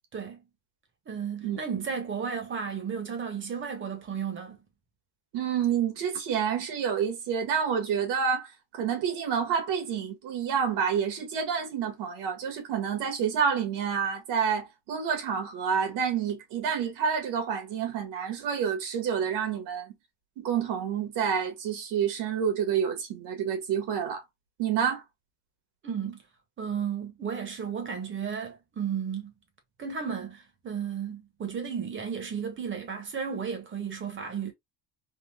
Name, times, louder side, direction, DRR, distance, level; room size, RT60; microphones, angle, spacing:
voice 1, 0.1-0.4 1.1-4.6 25.8-26.2 26.6-29.3 29.8-34.5, right 7 dB, 30° right, 1.0 m, -33 dB
voice 2, 5.3-19.9 20.4-24.2 24.6-25.0, right 7 dB, 70° right, 1.6 m, -28 dB
3.7 x 2.3 x 2.2 m
cardioid pair, 135°, 42 cm